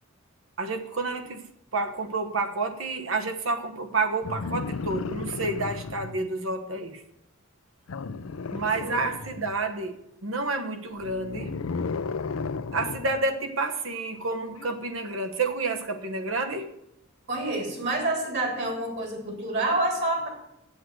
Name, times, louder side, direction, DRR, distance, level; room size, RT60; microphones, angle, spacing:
voice 1, 0.6-1.4 1.7-7.0 8.5-11.5 12.7-16.7, right 3 dB, 75° right, 8 dB, 1.2 m, -29 dB
sound 1, 4.2-6.2 7.9-9.6 10.9-13.2 14.5-14.7, left 4 dB, 85° left, 0.5 m, -34 dB
voice 2, 17.3-20.3, right 2 dB, 55° right, 2 dB, 3.4 m, -28 dB
8.0 x 7.8 x 7.8 m, 0.85 s
head